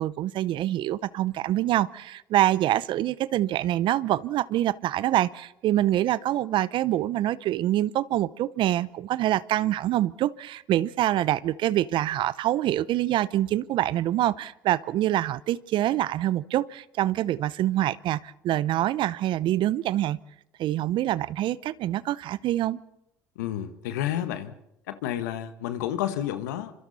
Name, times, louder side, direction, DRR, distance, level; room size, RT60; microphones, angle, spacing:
voice 1, 0.0-20.2 20.6-22.8, right 13 dB, 60° right, 0.7 m, -25 dB
voice 2, 23.3-24.6 24.9-26.7, left 11 dB, 85° left, 1.4 m, -30 dB
28.0 x 25.5 x 4.2 m
hypercardioid pair, 65°, 9 cm